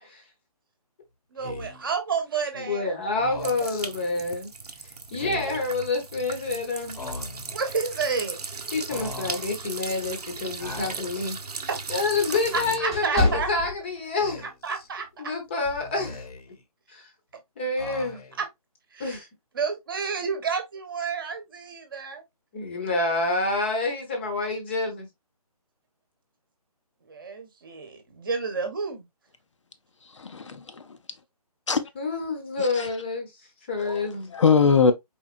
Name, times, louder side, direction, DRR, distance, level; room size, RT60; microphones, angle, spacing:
voice 1, 1.3-3.0 3.4-3.7 7.5-8.4 11.7-11.8 12.5-13.5 14.4-15.3 18.4-18.5 18.9-19.2 19.5-22.2 27.0-29.1, right 5 dB, 35° right, 1.0 m, -30 dB
Speech, 1.4-1.9 3.1-3.9 5.1-5.7 6.9-7.6 8.9-9.5 10.6-11.3 12.4-13.0 14.2-14.9 15.8-16.6 17.8-18.5, left 3 dB, 75° left, 1.0 m, -40 dB
voice 2, 2.6-4.5 5.1-7.0 8.7-14.4 15.2-16.2 16.9-17.1 17.6-18.2 19.0-19.3 22.5-25.1 32.0-33.3 33.7-34.3, left 3 dB, 15° left, 0.8 m, -28 dB
sound 1, 3.4-12.8, right 4 dB, 80° right, 0.9 m, -37 dB
sound 2, 11.5-14.4 14.8-15.0 15.6-15.9, left 2 dB, 10° right, 0.5 m, -29 dB
voice 3, 30.2-30.8 31.7-31.8 32.6-32.9 33.8-34.0 34.3-34.9, left 5 dB, 50° left, 0.5 m, -21 dB
4.3 x 3.5 x 2.5 m
hypercardioid pair, 165°, 20 cm